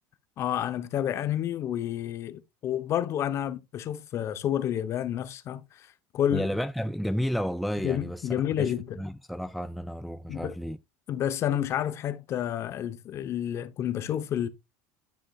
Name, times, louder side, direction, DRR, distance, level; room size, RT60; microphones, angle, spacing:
voice 1, 0.4-5.9 6.1-6.5 7.8-9.0 10.3-10.6 11.1-14.5, left 10 dB, 40° left, 1.0 m, -29 dB
voice 2, 6.3-8.3 8.6-10.8, equal, ahead, 0.3 m, -32 dB
10.0 x 6.1 x 2.5 m
supercardioid pair, 130°, 7 cm